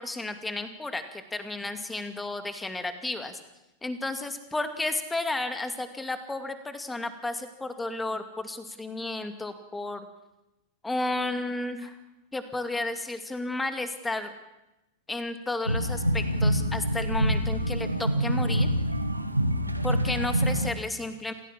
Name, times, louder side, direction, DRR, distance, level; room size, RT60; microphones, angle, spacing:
voice 1, 0.0-3.4 3.8-10.1 10.8-11.9 12.3-14.3 15.1-18.7 19.8-21.3, left 2 dB, 10° left, 9 dB, 2.3 m, -32 dB
sound 1, 15.7-20.7, equal, 85° right, 1.6 m, -26 dB
27.5 x 16.0 x 7.5 m, 0.98 s
figure-of-eight pair, 90°, 0 cm